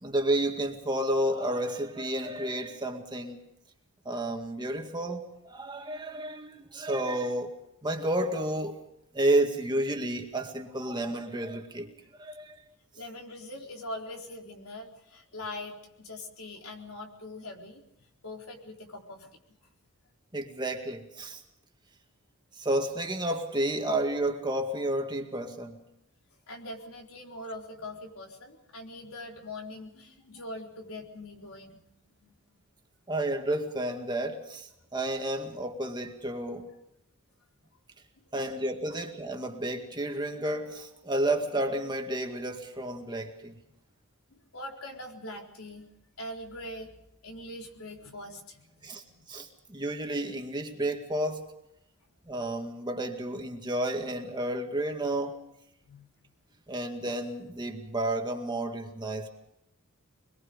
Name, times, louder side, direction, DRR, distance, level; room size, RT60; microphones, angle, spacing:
voice 1, 0.0-3.4 4.1-7.6 7.8-8.8 9.1-11.9 12.2-12.6 20.3-21.4 22.6-25.8 33.1-36.7 38.3-43.5 48.8-49.0 49.3-51.4 52.3-55.5 56.7-59.3, right 1 dB, 20° right, 3 dB, 2.0 m, -31 dB
voice 2, 13.0-19.4 26.5-31.8 32.2-32.6 38.2-38.5 38.9-39.0 44.3-45.9 46.2-46.9 47.2-48.9 55.8-56.1, left 1 dB, 70° left, 1 dB, 4.2 m, -42 dB
25.0 x 22.0 x 5.3 m, 0.82 s
head